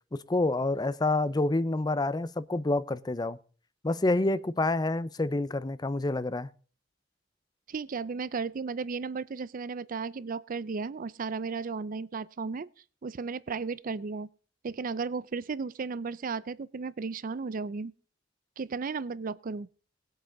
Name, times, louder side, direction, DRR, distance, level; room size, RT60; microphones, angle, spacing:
voice 1, 0.1-3.4 3.8-6.5, left 2 dB, 20° left, 0.5 m, -28 dB
voice 2, 7.7-12.7 13.0-14.3 14.6-17.9 18.6-19.7, right 4 dB, 45° right, 0.5 m, -34 dB
19.0 x 8.0 x 3.9 m
head